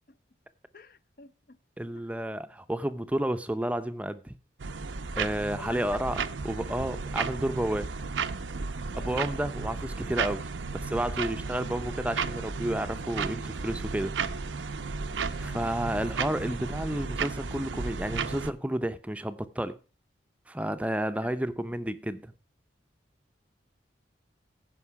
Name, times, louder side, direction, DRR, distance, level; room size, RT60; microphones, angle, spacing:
voice 1, 0.7-1.6 1.9-2.1 5.6-6.0 8.9-9.2 15.3-15.7 21.2-21.3, left 3 dB, 50° left, 0.6 m, -47 dB
voice 2, 1.8-4.3 5.2-7.9 9.0-14.1 15.4-19.8 20.5-22.3, right 1 dB, 5° right, 0.5 m, -31 dB
sound 1, 4.6-18.5, right 5 dB, 90° right, 0.7 m, -34 dB
15.5 x 5.3 x 4.7 m
head